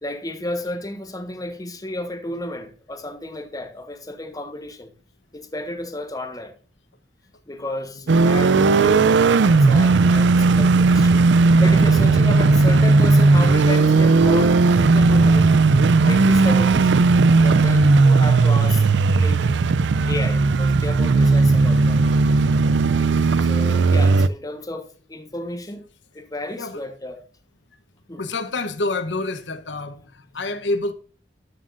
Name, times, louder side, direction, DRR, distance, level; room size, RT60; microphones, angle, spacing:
voice 1, 0.0-4.9 5.3-6.5 7.5-9.1 9.4-11.2 11.6-15.5 16.1-17.1 17.3-18.8 19.2-19.5 20.1-22.1 23.4-25.8 26.1-27.2 28.1-28.2, left 1 dB, 20° left, 1.2 m, -32 dB
sound 1, 8.1-24.3, right 3 dB, 80° right, 0.5 m, -16 dB
voice 2, 23.0-23.4 26.6-26.8 28.2-30.9, left 2 dB, 85° left, 1.0 m, -28 dB
12.5 x 7.3 x 2.6 m
head